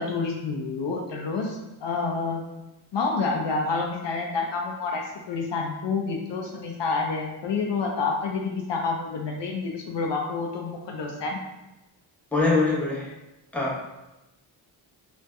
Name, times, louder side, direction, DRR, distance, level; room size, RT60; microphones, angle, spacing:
voice 1, 0.0-2.5 2.9-11.4, left 4 dB, 60° left, 1 dB, 0.5 m, -28 dB
voice 2, 12.3-13.1 13.5-13.8, left 3 dB, 5° left, -5 dB, 0.7 m, -23 dB
2.6 x 2.1 x 2.3 m, 0.98 s
cardioid pair, 45°, 49 cm